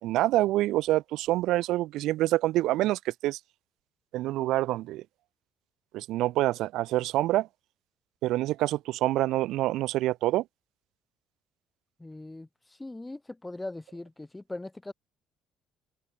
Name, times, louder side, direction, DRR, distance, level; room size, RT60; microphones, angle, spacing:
voice 1, 0.0-3.4 4.1-5.0 5.9-7.5 8.2-10.4, right 16 dB, 70° right, 3.6 m, -26 dB
voice 2, 12.0-14.9, left 2 dB, 10° left, 6.7 m, -40 dB
open air
cardioid pair, 150°, 0 cm